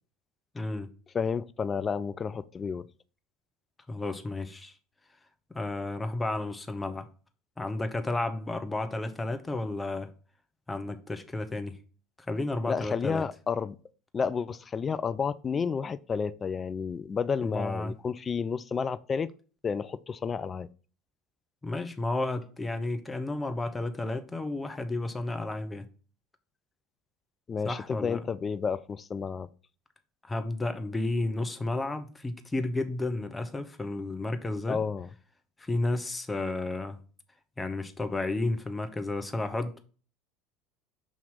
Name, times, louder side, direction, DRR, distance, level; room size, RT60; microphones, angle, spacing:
voice 1, 0.5-0.9 3.9-4.7 5.5-7.1 7.6-10.1 10.7-11.8 12.3-13.2 17.4-17.9 21.6-25.9 27.6-28.2 30.2-34.8 35.6-37.0 37.6-39.8, left 2 dB, 15° left, 0.9 m, -32 dB
voice 2, 1.1-2.9 12.7-13.8 14.1-19.3 19.6-20.7 27.5-29.5 34.7-35.1, left 6 dB, 30° left, 0.3 m, -31 dB
6.1 x 2.9 x 5.6 m
hypercardioid pair, 75°, 0 cm